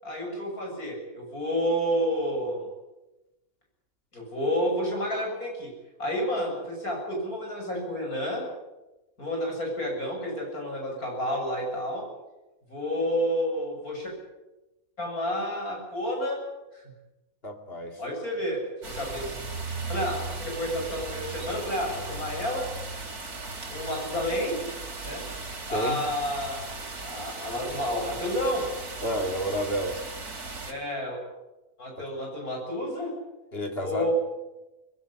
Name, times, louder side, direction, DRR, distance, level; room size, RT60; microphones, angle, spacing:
voice 1, 0.0-2.6 4.1-5.7 6.0-8.4 9.2-12.0 12.7-14.1 15.0-16.4 16.7-16.8 18.0-19.4 19.9-22.7 23.7-24.6 25.0-25.2 25.7-26.6 27.0-28.7 30.7-31.2 31.8-33.1 33.8-34.1, equal, 75° left, 1 dB, 7.7 m, -30 dB
voice 2, 17.4-18.0 25.7-26.0 29.0-30.0 32.0-32.1 33.5-34.1, equal, 40° left, 5 dB, 2.6 m, -30 dB
sound 1, 18.8-30.7, right 3 dB, 85° right, 3.7 m, -37 dB
21.0 x 17.0 x 9.9 m, 1.0 s
omnidirectional pair, 1.6 m